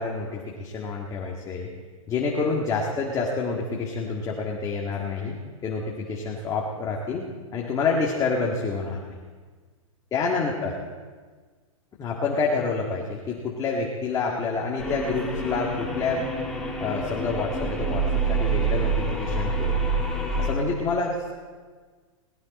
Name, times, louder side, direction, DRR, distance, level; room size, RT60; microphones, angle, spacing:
voice 1, 0.0-1.7 2.1-5.3 5.6-7.2 7.5-9.2 10.1-10.8 12.0-16.3 16.8-19.9 20.4-21.3, left 4 dB, 20° left, -2 dB, 1.9 m, -28 dB
sound 1, 14.8-20.5, right 3 dB, 5° left, 2.6 m, -27 dB
19.0 x 15.5 x 4.2 m, 1.5 s
hypercardioid pair, 135°, 17 cm